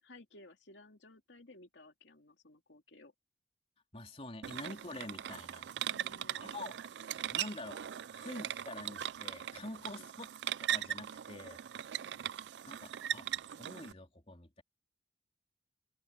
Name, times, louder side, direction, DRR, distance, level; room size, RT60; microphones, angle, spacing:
voice 1, 0.0-3.1 5.9-6.6 9.9-10.1 12.0-12.3, left 2 dB, 80° left, 2.6 m, -57 dB
voice 2, 3.9-5.7 6.4-6.9 7.3-7.8 8.1-11.6 12.7-13.3 13.6-14.6, left 2 dB, 35° left, 3.5 m, -47 dB
sound 1, 4.4-13.9, right 10 dB, 70° right, 0.4 m, -40 dB
open air
head